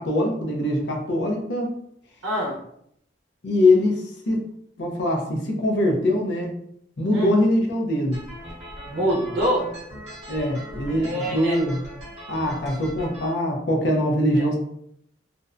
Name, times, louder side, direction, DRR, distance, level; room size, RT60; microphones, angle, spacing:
voice 1, 0.0-1.8 3.4-4.5 4.8-6.5 7.0-8.2 10.3-11.8 12.3-14.6, left 1 dB, 65° left, 1 dB, 0.5 m, -22 dB
voice 2, 2.2-2.6 7.1-7.3 8.9-9.7 11.0-11.5 14.4-14.5, equal, 75° right, -4 dB, 0.7 m, -25 dB
sound 1, 8.1-13.3, equal, 40° right, 0.9 m, -39 dB
2.5 x 2.1 x 2.4 m, 0.72 s
head